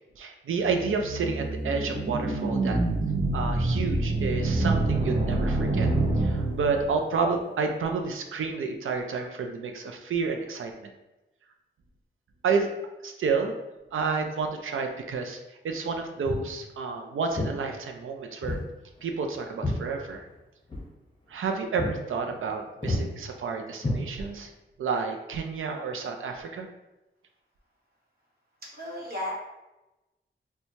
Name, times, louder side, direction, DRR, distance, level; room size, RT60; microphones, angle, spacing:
voice 1, 0.2-2.8 3.3-5.9 6.2-10.9 12.4-12.7 13.0-13.6 13.9-15.4 15.6-18.6 19.0-20.3 21.3-24.5 24.8-26.7, right 4 dB, 80° right, 4 dB, 0.4 m, -30 dB
sound 1, 0.7-7.0, right 2 dB, 25° right, 0.6 m, -27 dB
Walk footsteps, 16.2-16.5 17.3-17.6 18.4-18.7 19.0-20.4 20.7-20.9 21.3-21.5 21.8-22.0 22.3-22.5 22.8-23.1 23.8-24.5, left 1 dB, 25° left, 0.9 m, -30 dB
voice 2, 28.7-29.3, left 1 dB, 50° right, -4 dB, 1.2 m, -34 dB
4.4 x 2.2 x 2.7 m, 1.0 s
wide cardioid pair, 120°, 21 cm